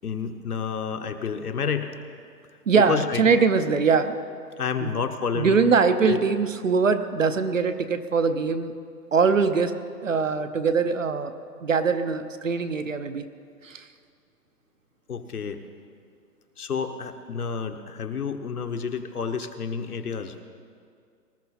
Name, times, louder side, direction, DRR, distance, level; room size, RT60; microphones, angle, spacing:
voice 1, 0.0-1.9 2.8-3.4 4.6-5.7 6.1-6.2 15.1-15.6 16.6-20.4, left 6 dB, 65° left, 7 dB, 1.2 m, -29 dB
voice 2, 2.7-4.2 4.8-4.9 5.3-8.7 9.1-9.7 10.0-11.3 11.6-13.2 13.6-13.9, right 5 dB, 50° right, 10 dB, 0.8 m, -22 dB
20.0 x 13.0 x 4.2 m, 2.2 s
hypercardioid pair, 175°, 49 cm